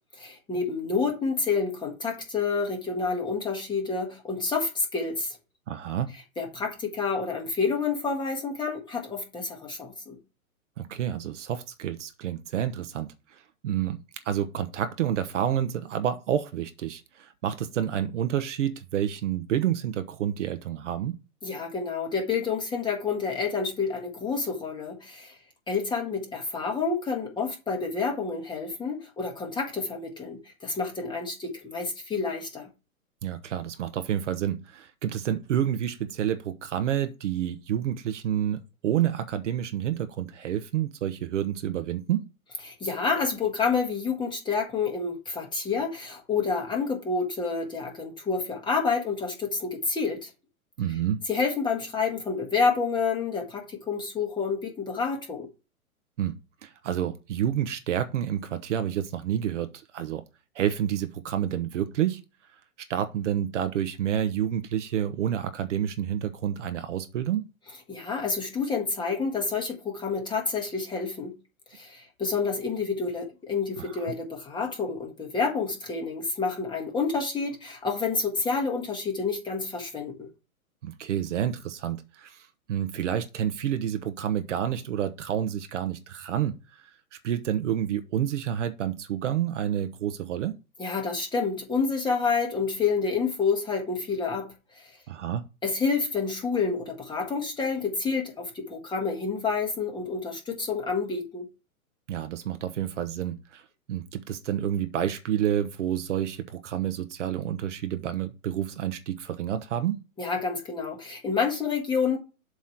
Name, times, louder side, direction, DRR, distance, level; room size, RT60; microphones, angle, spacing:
voice 1, 0.2-5.4 6.4-10.2 21.4-25.3 25.7-32.7 42.7-50.3 51.3-55.5 67.9-71.3 71.7-80.3 90.8-94.9 95.6-101.5 110.2-112.2, left 4 dB, 10° left, 1.6 m, -29 dB
voice 2, 5.7-6.1 10.8-14.0 14.2-21.2 33.2-42.3 50.8-51.2 56.2-56.3 56.6-60.2 60.5-62.2 62.9-67.5 73.8-74.1 80.8-86.9 87.2-90.6 95.1-95.4 102.1-103.6 103.9-110.0, right 10 dB, 55° right, 0.9 m, -29 dB
7.6 x 3.1 x 5.8 m
hypercardioid pair, 125°, 43 cm